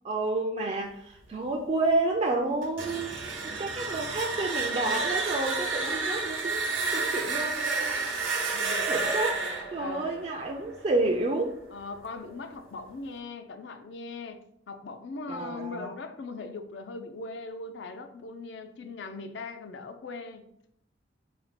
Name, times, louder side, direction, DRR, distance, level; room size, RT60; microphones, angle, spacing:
voice 1, 0.0-6.6 6.9-8.1 8.9-9.4 9.7-11.6 15.3-15.9, right 2 dB, 35° right, 0 dB, 0.3 m, -30 dB
sound 1, 2.6-11.4, right 3 dB, 90° right, 0.9 m, -31 dB
voice 2, 8.4-8.9 9.8-10.3 11.7-20.5, left 3 dB, 65° left, 8 dB, 0.4 m, -40 dB
4.2 x 2.2 x 4.1 m, 0.72 s
head